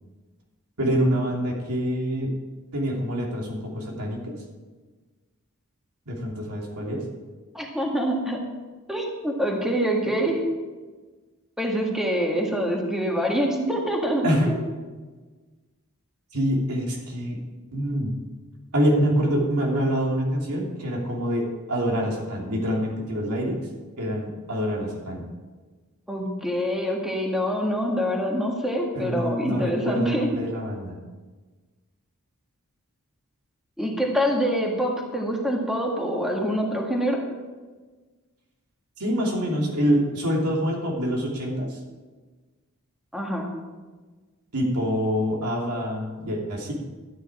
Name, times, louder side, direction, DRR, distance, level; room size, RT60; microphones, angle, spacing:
voice 1, 0.8-2.3 2.7-4.3 6.1-7.0 14.2-14.5 16.3-17.4 17.7-18.1 18.7-23.6 24.0-25.2 28.9-31.0 39.0-41.8 44.5-46.7, equal, 90° right, -2 dB, 2.9 m, -26 dB
voice 2, 7.5-8.4 8.9-10.4 11.6-14.5 26.1-30.3 33.8-37.2 43.1-43.5, equal, ahead, -1 dB, 1.7 m, -25 dB
12.5 x 9.6 x 4.9 m, 1.3 s
head